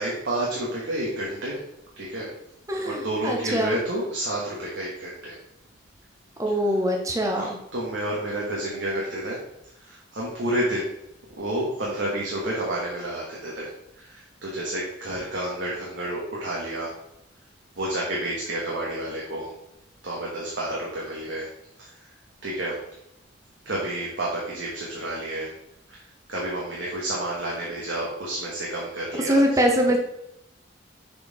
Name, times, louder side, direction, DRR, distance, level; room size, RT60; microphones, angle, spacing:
voice 1, 0.0-1.6 2.0-2.3 2.8-5.3 7.1-9.4 9.8-10.9 11.4-13.7 14.0-16.9 17.8-19.5 20.0-21.5 21.8-21.9 22.4-22.8 23.6-25.5 25.9-26.0 26.3-29.4, right 1 dB, 70° right, -4 dB, 1.4 m, -30 dB
voice 2, 2.7-3.8 6.4-7.6 29.2-30.0, equal, 15° right, 2 dB, 0.7 m, -23 dB
6.7 x 4.2 x 4.0 m, 0.81 s
head